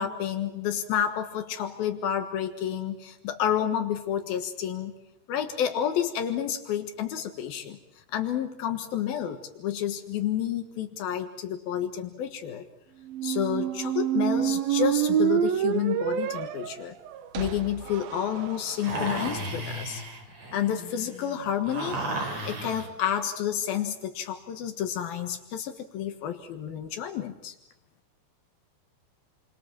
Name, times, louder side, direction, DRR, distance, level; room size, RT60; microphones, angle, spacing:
voice 1, 0.0-4.9 5.3-7.8 8.1-12.7 13.2-16.9 17.4-20.0 20.5-22.0 22.5-27.5, left 9 dB, 85° left, 6 dB, 3.3 m, -30 dB
sound 1, 13.1-19.0, right 10 dB, 85° right, 3.1 m, -27 dB
sound 2, 18.8-22.9, right 1 dB, 50° right, 5.7 m, -34 dB
29.5 x 24.0 x 7.3 m, 0.86 s
omnidirectional pair, 4.1 m